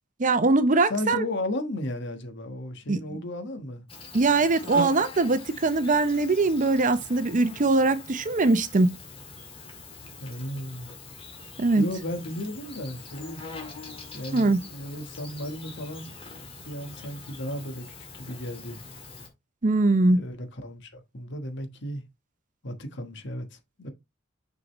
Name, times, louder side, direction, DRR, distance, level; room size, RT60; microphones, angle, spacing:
voice 1, 0.2-1.2 2.9-3.2 4.1-9.0 11.6-11.9 14.3-14.6 19.6-20.2, right 3 dB, 40° right, 0.6 m, -22 dB
voice 2, 0.9-3.8 10.2-10.9 11.7-13.4 14.1-16.1 16.6-18.8 20.1-22.0 22.6-23.9, left 1 dB, 60° left, 1.3 m, -34 dB
Insect, 3.9-19.3, left 2 dB, 30° left, 1.9 m, -42 dB
6.4 x 5.1 x 3.1 m
head